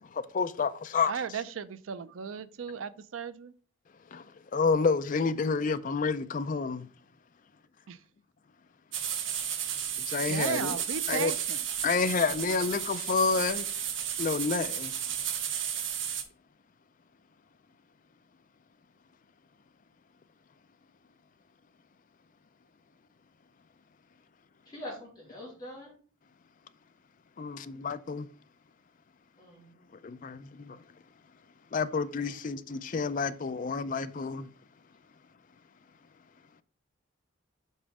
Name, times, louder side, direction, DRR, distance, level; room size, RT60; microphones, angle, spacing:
voice 1, 0.1-1.1 4.1-4.2 4.5-6.9 10.1-10.7 11.1-11.3 11.8-13.7 14.2-14.9 27.4-28.3 30.0-30.8 31.7-34.5, left 4 dB, 40° left, 0.4 m, -29 dB
voice 2, 1.1-3.5 10.3-11.6 32.2-32.4, right 6 dB, 90° right, 0.5 m, -35 dB
sound 1, 8.9-16.2, right 9 dB, 70° right, 0.9 m, -33 dB
voice 3, 24.7-25.9 29.4-29.7, left 1 dB, 20° left, 3.5 m, -43 dB
5.5 x 5.0 x 4.8 m
head